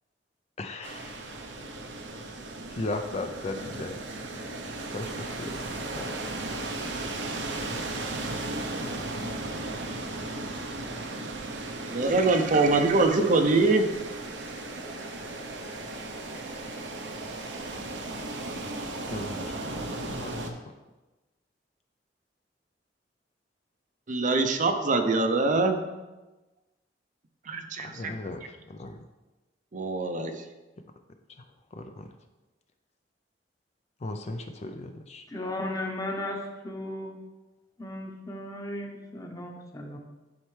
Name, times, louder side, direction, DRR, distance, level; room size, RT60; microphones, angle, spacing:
voice 1, 0.6-1.2 2.7-3.9 4.9-5.6 5.9-6.2 19.1-20.6 27.8-29.0 31.3-31.4 31.7-32.1 34.0-35.2, left 2 dB, 40° left, 6 dB, 0.4 m, -37 dB
sound 1, 0.8-20.5, right 2 dB, 90° right, 0.8 m, -36 dB
voice 2, 11.9-13.9 24.1-25.8 27.5-28.1 29.7-30.3, right 3 dB, 45° right, 6 dB, 0.6 m, -23 dB
voice 3, 35.3-37.1 37.8-40.0, left 1 dB, 20° left, 1 dB, 1.0 m, -35 dB
10.5 x 4.4 x 3.2 m, 1.1 s
head